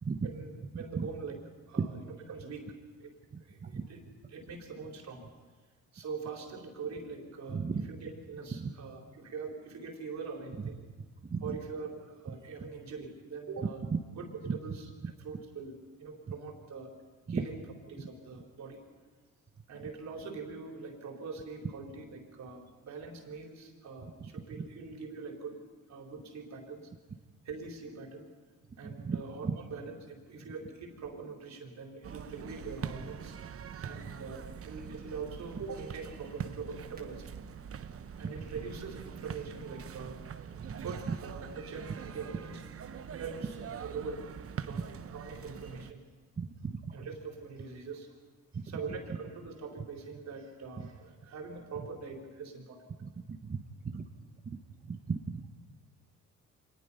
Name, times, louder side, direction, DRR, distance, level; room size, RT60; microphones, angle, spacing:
voice 1, 0.2-1.4 1.7-2.7 3.0-3.1 3.4-4.0 4.3-5.2 5.9-10.8 11.4-13.8 14.2-14.9 15.2-16.9 17.3-17.6 17.9-18.8 19.7-25.6 25.9-26.9 27.4-28.3 28.8-33.4 33.8-37.2 38.2-40.2 40.8-42.6 43.2-44.3 44.6-46.0 46.9-48.2 48.6-52.8, right 4 dB, 65° right, 1 dB, 4.1 m, -43 dB
voice 2, 7.5-7.9 8.6-8.7 11.3-11.4 14.5-14.6 17.3-17.4 29.0-29.2 46.4-46.7 53.3-53.4 53.9-54.0 54.9-55.2, right 5 dB, 30° right, 3 dB, 1.4 m, -33 dB
sound 1, 32.0-45.9, right 7 dB, 50° right, 1.0 m, -44 dB
24.5 x 20.0 x 5.6 m, 1.4 s
cardioid pair, 90°, 30 cm